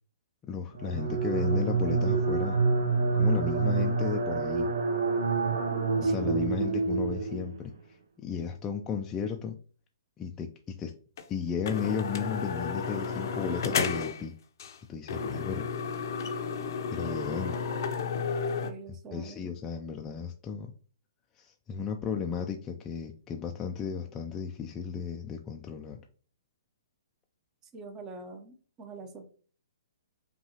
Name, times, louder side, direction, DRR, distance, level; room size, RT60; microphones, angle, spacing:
voice 1, 0.5-2.6 3.2-4.7 6.0-9.6 10.2-10.9 11.3-14.3 14.9-15.7 16.9-17.6 19.1-20.7 21.4-26.0, left 6 dB, 20° left, 2 dB, 0.4 m, -34 dB
sound 1, 0.8-7.7, right 4 dB, 75° right, 0.7 m, -27 dB
voice 2, 6.0-6.5 18.6-19.5 27.6-29.3, right 4 dB, 20° right, 5 dB, 0.7 m, -44 dB
sound 2, 11.2-11.3 11.7-14.2 14.6-14.8 15.1-18.7, left 5 dB, 60° left, 0.6 m, -32 dB
5.4 x 2.3 x 2.9 m, 0.42 s
hypercardioid pair, 135°, 2 cm